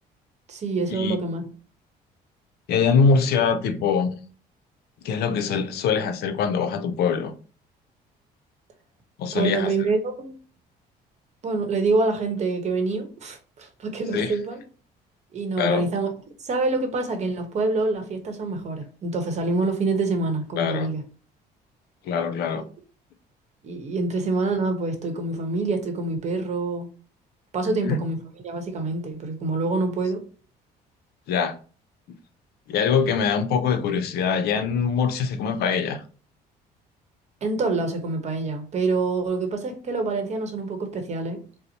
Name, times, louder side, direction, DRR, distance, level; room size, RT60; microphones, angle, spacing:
voice 1, 0.5-1.4 9.3-10.3 11.4-14.6 15.3-16.1 16.4-21.0 23.6-26.9 27.5-28.2 28.4-30.2 37.4-41.4, right 3 dB, 40° right, 0.9 m, -26 dB
voice 2, 2.7-4.1 5.0-7.3 9.2-9.7 14.1-14.3 15.6-15.8 20.6-20.9 22.0-22.6 27.7-28.0 31.3-31.5 32.7-36.0, left 6 dB, 70° left, 0.5 m, -23 dB
4.0 x 2.0 x 2.8 m
cardioid pair, 110°, 17 cm